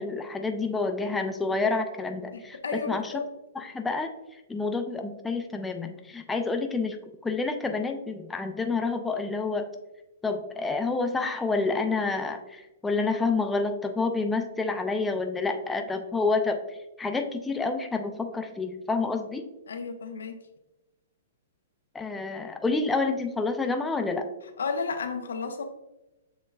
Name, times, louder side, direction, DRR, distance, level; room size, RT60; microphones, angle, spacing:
voice 1, 0.0-3.1 3.5-4.1 4.5-7.0 7.2-9.7 10.2-19.5 21.9-24.3, left 3 dB, 10° left, 4 dB, 0.4 m, -28 dB
voice 2, 2.3-3.2 19.7-20.4 24.6-25.6, left 4 dB, 80° left, 6 dB, 0.6 m, -32 dB
7.3 x 3.0 x 2.3 m, 0.97 s
hypercardioid pair, 125°, 0 cm